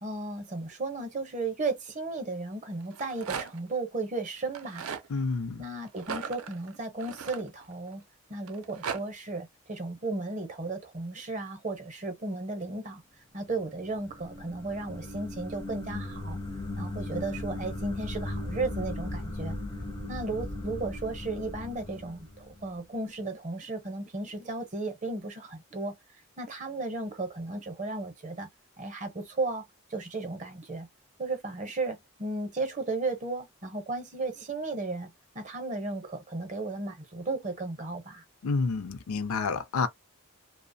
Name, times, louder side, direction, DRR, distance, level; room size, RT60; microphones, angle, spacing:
voice 1, 0.0-4.9 5.6-8.0 8.3-13.0 13.3-16.4 16.8-19.5 20.1-26.0 26.4-28.5 28.8-29.6 29.9-30.9 31.2-38.2, right 3 dB, 35° right, 0.7 m, -34 dB
Rattle, 2.8-3.7 4.5-5.1 6.0-7.9 8.5-9.0, right 6 dB, 75° right, 0.5 m, -37 dB
voice 2, 5.1-5.6 38.4-39.9, left 4 dB, 80° left, 0.5 m, -29 dB
sound 1, 13.6-22.8, left 1 dB, 20° left, 0.4 m, -37 dB
2.7 x 2.0 x 2.6 m
head